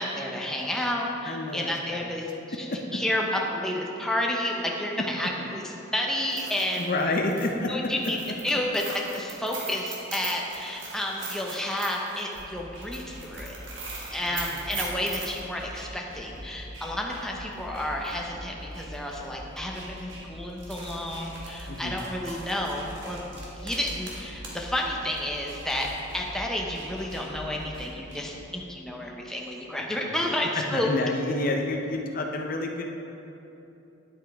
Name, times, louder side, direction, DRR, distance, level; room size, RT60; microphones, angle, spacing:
voice 1, 0.0-2.3 2.6-2.7 2.9-5.6 5.9-6.9 7.7-8.2 8.4-13.5 14.1-23.2 23.6-25.9 26.1-30.9, left 1 dB, 5° left, -1 dB, 0.7 m, -31 dB
voice 2, 1.2-2.1 2.7-2.8 5.2-5.5 6.8-7.9 14.3-14.8 21.7-22.0 30.1-30.2 30.7-32.8, left 2 dB, 45° left, 2 dB, 0.6 m, -29 dB
sound 1, 6.2-15.4 17.6-17.7 18.0-18.1 18.9-19.1 19.5-19.6 20.5-24.7 24.9-26.0, right 3 dB, 65° right, 1.7 m, -40 dB
sound 2, 12.3-28.4, equal, 80° right, 2.0 m, -43 dB
10.0 x 8.0 x 3.5 m, 2.9 s
head